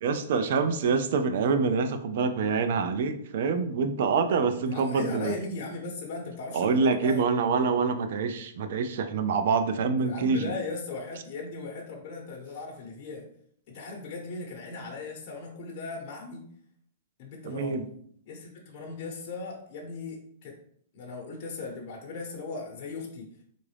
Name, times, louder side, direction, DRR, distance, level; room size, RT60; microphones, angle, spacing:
voice 1, 0.0-5.4 6.5-10.5 17.5-17.8, right 5 dB, 60° right, 9 dB, 0.4 m, -26 dB
voice 2, 4.7-7.2 10.0-13.3 13.7-16.4 17.2-17.9 18.2-20.5 20.9-23.3, left 3 dB, 40° left, -1 dB, 0.9 m, -38 dB
3.8 x 2.4 x 3.3 m, 0.63 s
hypercardioid pair, 150°, 0 cm